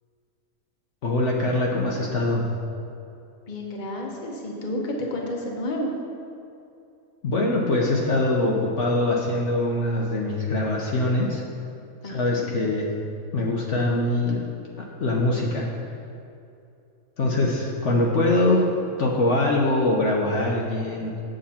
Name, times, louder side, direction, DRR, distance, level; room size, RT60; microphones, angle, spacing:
voice 1, 1.0-2.4 7.2-11.4 12.0-12.9 13.3-14.4 15.0-15.7 17.2-18.6 19.0-21.1, left 2 dB, 60° left, -2 dB, 1.2 m, -23 dB
voice 2, 3.5-5.9 12.0-12.5, left 1 dB, 35° left, -1 dB, 1.1 m, -31 dB
7.9 x 7.7 x 4.3 m, 2.6 s
omnidirectional pair, 1.4 m